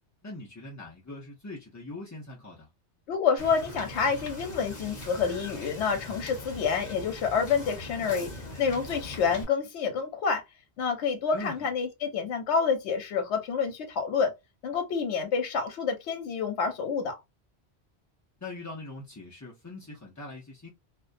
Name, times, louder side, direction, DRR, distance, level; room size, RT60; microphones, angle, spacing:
voice 1, 0.2-2.7 11.3-11.7 18.4-20.7, left 2 dB, 25° left, 0.4 m, -42 dB
voice 2, 3.1-8.3 8.6-10.4 10.8-14.3 14.6-17.1, left 6 dB, 85° left, 1.0 m, -28 dB
Wind / Boat Water vehicle, 3.4-9.4, left 2 dB, 45° left, 0.9 m, -41 dB
2.4 x 2.1 x 2.5 m
omnidirectional pair, 1.1 m